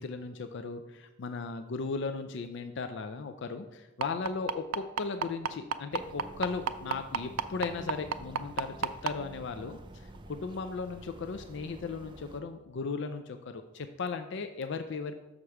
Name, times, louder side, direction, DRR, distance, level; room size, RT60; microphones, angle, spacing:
voice 1, 0.0-15.2, left 4 dB, 60° left, 8 dB, 0.4 m, -37 dB
sound 1, 4.0-9.1 10.1-10.2 10.6-10.7 11.2-11.3, right 7 dB, 85° right, 0.4 m, -29 dB
sound 2, 5.9-12.4, right 2 dB, 25° right, 0.4 m, -49 dB
6.6 x 4.9 x 5.8 m, 1.0 s
head